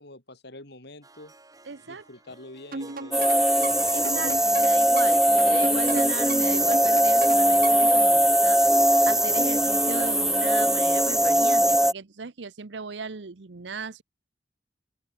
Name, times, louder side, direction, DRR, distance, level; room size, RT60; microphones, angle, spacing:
voice 1, 0.0-1.3 1.9-3.3, left 2 dB, 65° left, 6.1 m, -46 dB
Harp, 1.0-8.2, right 2 dB, 20° right, 5.4 m, -55 dB
voice 2, 1.6-2.0 3.9-8.6 9.0-14.0, right 4 dB, 70° right, 0.8 m, -37 dB
sound 1, 2.7-8.0, right 3 dB, 55° right, 1.6 m, -37 dB
sound 2, 3.1-11.9, right 1 dB, 5° right, 0.6 m, -20 dB
head